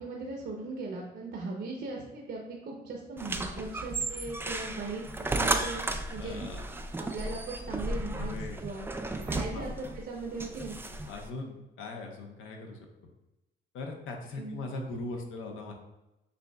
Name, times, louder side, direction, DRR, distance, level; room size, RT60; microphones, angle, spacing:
voice 1, 0.0-6.4 7.0-8.3 8.6-8.9 9.2-10.8 14.4-14.6, right 3 dB, 55° right, -1 dB, 0.7 m, -38 dB
door open, 3.2-11.3, right 2 dB, 10° right, 0.3 m, -34 dB
voice 2, 6.2-6.7 8.1-8.6 9.5-9.6 10.9-12.8 13.7-15.7, left 2 dB, 85° left, 2 dB, 0.8 m, -40 dB
6.8 x 2.7 x 2.3 m, 0.97 s
cardioid pair, 90°, 20 cm